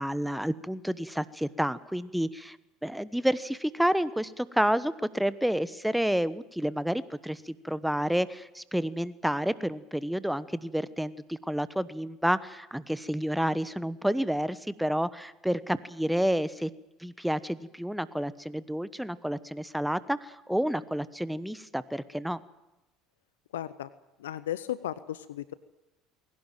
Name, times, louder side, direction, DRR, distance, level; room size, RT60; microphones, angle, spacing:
voice 1, 0.0-2.6 2.8-16.7 17.0-22.4, equal, ahead, 16 dB, 1.1 m, -30 dB
voice 2, 23.5-23.9 24.2-25.5, left 12 dB, 80° left, 16 dB, 0.7 m, -35 dB
21.0 x 17.5 x 9.2 m, 1.0 s
hypercardioid pair, 65°, 0 cm